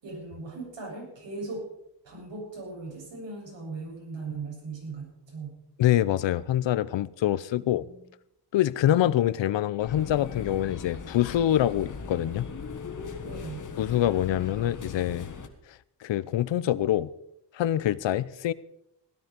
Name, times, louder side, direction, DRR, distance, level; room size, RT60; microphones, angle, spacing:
voice 1, 0.0-1.6 2.0-5.6 7.6-8.1 13.2-13.7, right 3 dB, 85° right, 8.0 m, -39 dB
voice 2, 5.8-7.9 8.5-12.5 13.8-15.3 16.0-17.1 17.5-18.5, left 12 dB, 90° left, 0.7 m, -25 dB
sound 1, 9.8-15.5, left 5 dB, 45° left, 1.6 m, -39 dB
16.5 x 12.5 x 5.2 m
wide cardioid pair, 170°, 43 cm